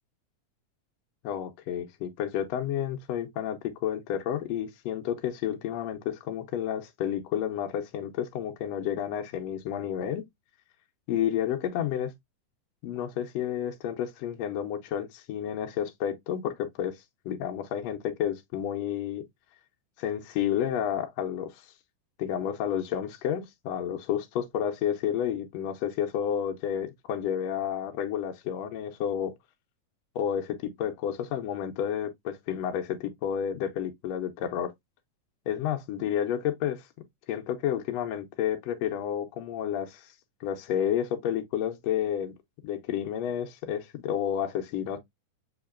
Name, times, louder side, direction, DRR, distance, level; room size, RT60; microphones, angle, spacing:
voice 1, 1.2-10.3 11.1-12.1 12.8-17.0 17.2-19.2 20.0-21.6 22.2-29.3 30.1-34.7 35.5-36.8 37.3-40.1 40.4-42.3 42.6-45.0, left 9 dB, 85° left, 1.5 m, -30 dB
7.0 x 2.9 x 2.3 m
omnidirectional pair, 3.7 m